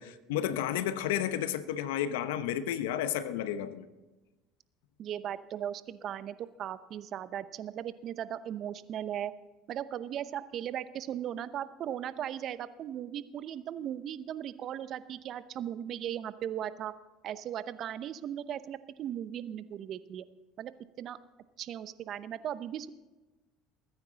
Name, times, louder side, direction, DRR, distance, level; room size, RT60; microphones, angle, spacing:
voice 1, 0.0-3.9, left 10 dB, 85° left, 0.9 m, -32 dB
voice 2, 5.0-9.3 9.7-16.9 17.2-20.3 20.6-21.2 21.6-22.9, right 10 dB, 55° right, 0.7 m, -37 dB
21.5 x 9.7 x 4.0 m
supercardioid pair, 85°, 0 cm